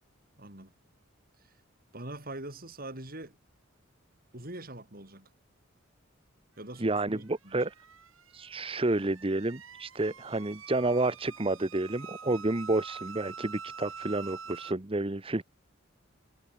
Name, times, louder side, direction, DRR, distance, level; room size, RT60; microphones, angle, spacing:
voice 1, 0.4-0.7 1.9-3.4 4.3-5.3 6.6-7.6, right 1 dB, 45° right, 5.7 m, -43 dB
voice 2, 6.8-7.7 8.3-15.4, right 2 dB, 25° right, 1.0 m, -30 dB
sound 1, 7.1-14.7, right 6 dB, 75° right, 6.7 m, -46 dB
head